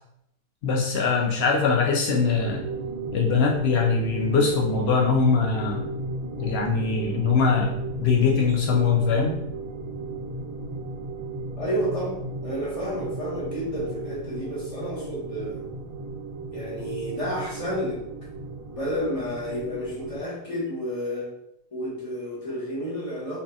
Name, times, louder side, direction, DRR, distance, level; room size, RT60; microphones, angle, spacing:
voice 1, 0.6-2.6 3.1-5.9 6.4-9.3, left 5 dB, 85° left, -1 dB, 0.5 m, -22 dB
sound 1, 2.2-20.2, right 2 dB, 70° right, 1.1 m, -35 dB
voice 2, 11.6-15.6 16.5-18.0 18.7-21.3 21.7-23.4, equal, 25° left, -7 dB, 1.2 m, -30 dB
3.8 x 3.6 x 2.3 m, 0.78 s
omnidirectional pair, 1.7 m